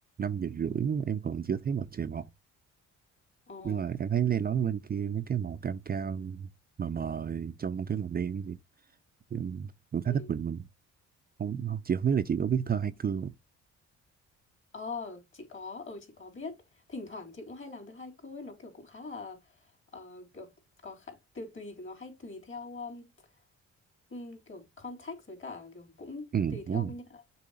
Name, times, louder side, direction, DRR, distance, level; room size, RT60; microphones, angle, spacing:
voice 1, 0.2-2.2 3.6-6.5 6.8-8.6 9.3-10.7 11.4-13.3 26.3-26.9, right 8 dB, 30° right, 0.5 m, -31 dB
voice 2, 3.5-3.9 10.1-10.3 14.7-20.5 20.8-23.0 24.1-27.2, left 3 dB, 40° left, 3.4 m, -43 dB
6.9 x 3.1 x 4.8 m
cardioid pair, 90°, 30 cm